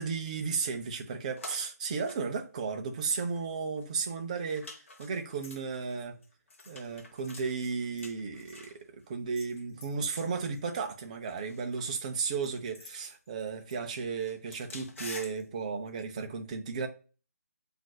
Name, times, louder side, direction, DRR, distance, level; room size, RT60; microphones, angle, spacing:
voice 1, 0.0-4.7 5.0-6.2 6.7-8.8 9.1-16.9, right 5 dB, 25° right, 0.5 m, -34 dB
sound 1, 1.4-1.7 2.0-2.9 3.3-3.4 3.8-3.9 4.5-8.8 9.3-10.6 11.2-11.9 12.4-13.9 14.2-15.4 15.9-16.0, left 3 dB, 50° left, 0.7 m, -48 dB
7.4 x 2.5 x 2.2 m
figure-of-eight pair, 160°, 9 cm